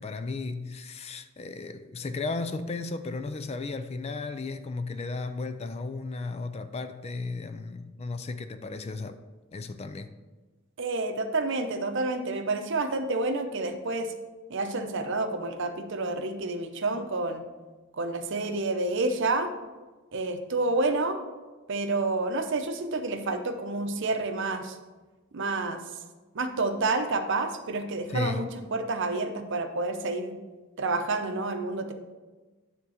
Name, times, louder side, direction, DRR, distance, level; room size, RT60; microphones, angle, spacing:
voice 1, 0.0-9.2 9.5-10.1 28.1-28.5, left 3 dB, 30° left, 0.4 m, -34 dB
voice 2, 10.8-14.1 14.5-17.5 18.0-19.5 20.1-21.2 21.7-24.8 25.3-25.8 26.3-30.4 30.8-31.9, right 2 dB, 60° right, 0.7 m, -29 dB
9.5 x 3.6 x 6.4 m
head